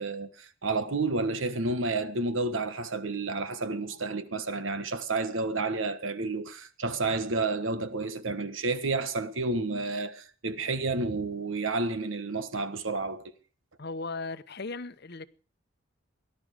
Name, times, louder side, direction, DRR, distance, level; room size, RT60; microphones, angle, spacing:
voice 1, 0.0-13.3, right 3 dB, 80° right, 1.5 m, -30 dB
voice 2, 13.8-15.3, left 3 dB, 55° left, 0.9 m, -37 dB
19.0 x 11.5 x 5.0 m
head